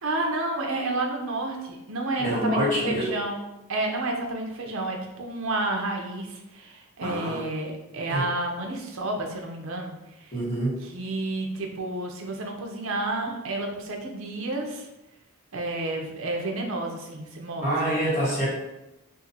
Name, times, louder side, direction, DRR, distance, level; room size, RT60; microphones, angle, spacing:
voice 1, 0.0-3.4 3.7-10.3 10.8-14.9 15.5-18.4, right 2 dB, 65° right, 2 dB, 0.6 m, -30 dB
voice 2, 2.2-3.1 7.0-7.4 8.1-8.2 10.3-10.8 17.6-18.5, right 1 dB, 35° left, -10 dB, 1.4 m, -26 dB
2.6 x 2.5 x 4.0 m, 0.96 s
head